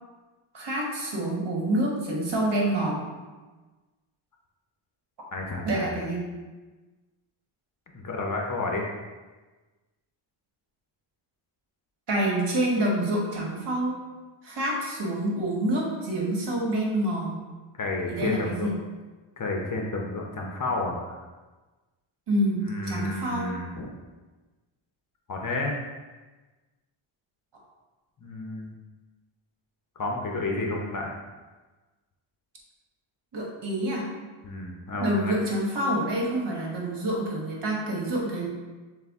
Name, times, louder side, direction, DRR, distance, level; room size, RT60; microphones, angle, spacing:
voice 1, 0.5-3.0 5.6-6.3 12.1-14.0 14.4-17.4 18.1-18.7 22.3-23.6 33.3-34.1 35.0-38.5, right 1 dB, 55° right, -2 dB, 1.3 m, -27 dB
voice 2, 5.3-6.0 7.9-8.8 17.8-18.7 19.4-21.2 22.6-23.9 25.3-25.8 28.2-28.8 30.0-31.1 34.4-35.3, left 2 dB, 40° left, 0 dB, 0.7 m, -31 dB
6.7 x 2.3 x 3.5 m, 1.3 s
cardioid pair, 100°, 50 cm